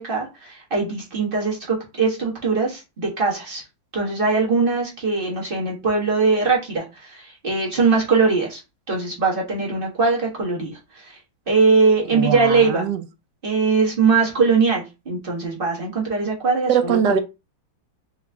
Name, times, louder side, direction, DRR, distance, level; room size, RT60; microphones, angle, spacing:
voice 1, 0.0-3.6 3.9-8.6 8.9-11.2 11.5-12.9 13.4-17.2, right 4 dB, 30° right, 1.3 m, -21 dB
voice 2, 12.1-13.0 16.7-17.2, right 8 dB, 70° right, 1.1 m, -21 dB
3.7 x 3.0 x 3.4 m
omnidirectional pair, 2.2 m